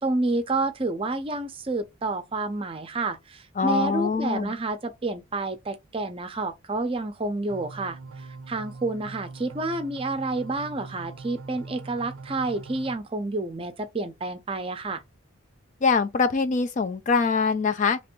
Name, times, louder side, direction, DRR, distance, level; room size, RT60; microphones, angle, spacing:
voice 1, 0.0-15.0, right 2 dB, 25° right, 0.5 m, -29 dB
voice 2, 3.6-4.5 15.8-18.0, left 5 dB, 35° left, 0.3 m, -23 dB
sound 1, 7.5-13.0, right 4 dB, 80° right, 0.5 m, -42 dB
3.0 x 2.6 x 4.3 m
head